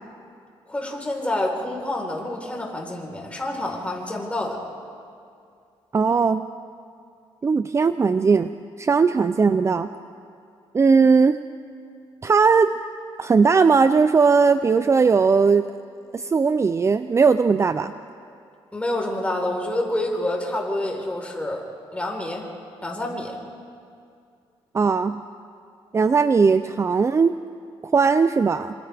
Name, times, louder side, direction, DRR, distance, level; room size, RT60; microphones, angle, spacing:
voice 1, 0.7-4.6 18.7-21.7 21.9-22.5 22.8-23.4, left 1 dB, 15° left, 0 dB, 4.2 m, -28 dB
voice 2, 5.9-6.5 7.4-9.9 10.7-11.4 12.2-12.8 13.2-15.7 16.1-17.9 24.7-25.2 25.9-27.3 27.9-28.7, right 5 dB, 30° right, 11 dB, 0.5 m, -18 dB
27.5 x 27.0 x 3.5 m, 2.4 s
cardioid pair, 100°, 10 cm